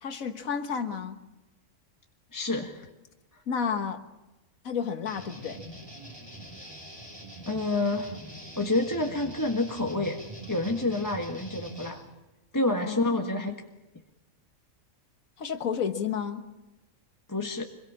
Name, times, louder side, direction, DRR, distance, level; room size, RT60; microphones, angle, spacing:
voice 1, 0.0-1.2 3.5-4.0 4.6-5.6 12.8-13.5 15.4-16.5, left 7 dB, 80° left, 6 dB, 1.9 m, -31 dB
voice 2, 2.3-2.9 7.5-8.1 8.6-10.2 10.5-12.0 12.5-13.6 17.3-17.6, left 2 dB, 15° left, 1 dB, 1.5 m, -28 dB
sound 1, 5.1-11.9, right 1 dB, 15° right, 6.6 m, -44 dB
26.5 x 22.5 x 7.4 m, 1.0 s
omnidirectional pair, 1.4 m